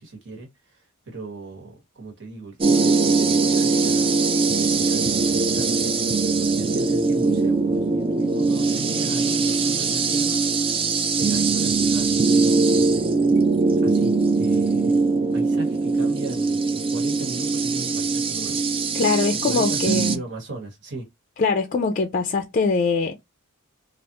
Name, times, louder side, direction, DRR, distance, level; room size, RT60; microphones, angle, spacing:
voice 1, 0.0-4.2 4.8-5.9 6.4-10.4 11.2-13.1 13.8-18.6 19.4-21.0, right 2 dB, 55° right, 1.3 m, -37 dB
sound 1, 2.6-20.2, right 4 dB, 25° right, 0.4 m, -21 dB
voice 2, 18.9-20.2 21.4-23.1, left 4 dB, 35° left, 0.4 m, -22 dB
3.4 x 2.4 x 2.8 m
head